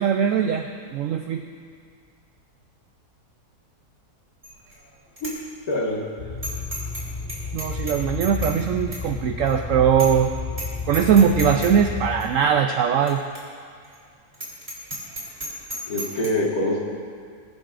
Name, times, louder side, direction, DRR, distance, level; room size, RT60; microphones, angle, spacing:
voice 1, 0.0-1.4 7.5-10.3 10.9-13.2, right 7 dB, 65° right, 5 dB, 0.9 m, -20 dB
Bicycle bell, 4.4-4.8 5.2-5.3 5.7-5.8 6.4-7.0 7.3-8.6 8.9-9.0 9.5-9.6 10.0-10.3 10.5-10.7 10.9-11.7 12.2-12.3 13.1-13.2 13.4-13.5 13.8-14.0 14.3-16.3, right 1 dB, 35° right, 3.1 m, -33 dB
voice 2, 5.7-6.1 15.9-16.8, left 1 dB, 70° left, -3 dB, 2.3 m, -24 dB
sound 1, 6.2-12.3, left 4 dB, 45° left, 0.5 m, -32 dB
20.5 x 10.5 x 2.5 m, 2.1 s
omnidirectional pair, 1.6 m